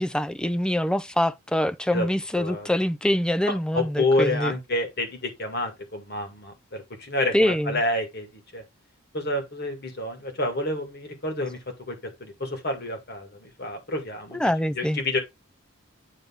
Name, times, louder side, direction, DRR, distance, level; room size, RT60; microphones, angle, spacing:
voice 1, 0.0-4.5 7.3-7.8 14.3-15.0, left 1 dB, 5° left, 0.3 m, -24 dB
voice 2, 2.4-2.7 3.7-8.6 9.1-11.6 11.9-12.0 12.2-14.4 14.8-15.2, left 1 dB, 50° left, 2.1 m, -28 dB
9.3 x 3.6 x 3.8 m
head